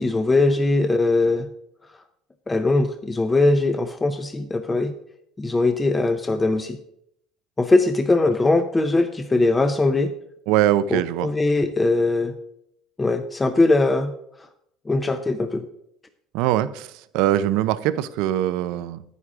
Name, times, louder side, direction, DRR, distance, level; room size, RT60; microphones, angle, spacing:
voice 1, 0.0-1.5 2.5-4.9 5.4-6.8 7.6-10.1 10.9-12.3 13.0-14.1 14.9-15.6, left 2 dB, 15° left, 8 dB, 0.5 m, -20 dB
voice 2, 10.5-11.3 16.3-19.0, right 13 dB, 75° right, 15 dB, 0.5 m, -22 dB
9.8 x 9.4 x 3.6 m, 0.74 s
cardioid pair, 150°, 0 cm